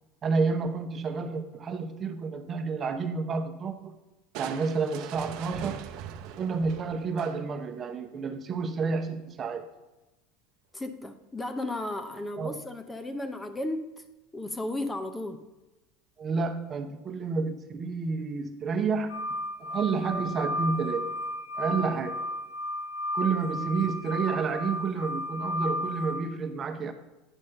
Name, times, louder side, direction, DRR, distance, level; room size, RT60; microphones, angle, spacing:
voice 1, 0.2-3.9 4.4-5.8 6.2-9.6 12.4-12.6 16.2-19.1 19.6-21.1 21.6-22.2 23.1-26.9, right 4 dB, 30° right, 6 dB, 0.9 m, -30 dB
Crushing, 4.3-7.7, right 9 dB, 60° right, 0.7 m, -41 dB
voice 2, 10.7-14.0 14.3-15.4, left 1 dB, 15° left, 8 dB, 0.7 m, -34 dB
sound 1, 19.1-26.2, left 1 dB, 70° left, 1.0 m, -33 dB
9.9 x 4.3 x 6.5 m, 1.0 s
supercardioid pair, 115°, 0 cm